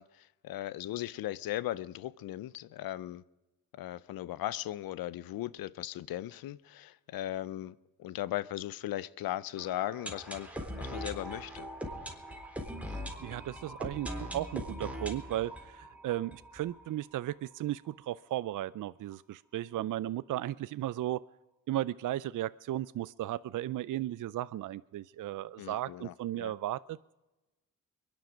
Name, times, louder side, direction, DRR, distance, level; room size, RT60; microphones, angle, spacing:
voice 1, 0.0-3.2 3.7-11.7 25.6-26.5, left 14 dB, 90° left, 0.6 m, -38 dB
sound 1, 9.6-17.3 17.6-17.7 17.9-18.0 18.5-18.6, equal, 5° right, 3.8 m, -41 dB
voice 2, 12.9-21.2 21.7-27.2, right 13 dB, 65° right, 0.5 m, -35 dB
23.0 x 10.5 x 5.1 m
cardioid pair, 65°, 34 cm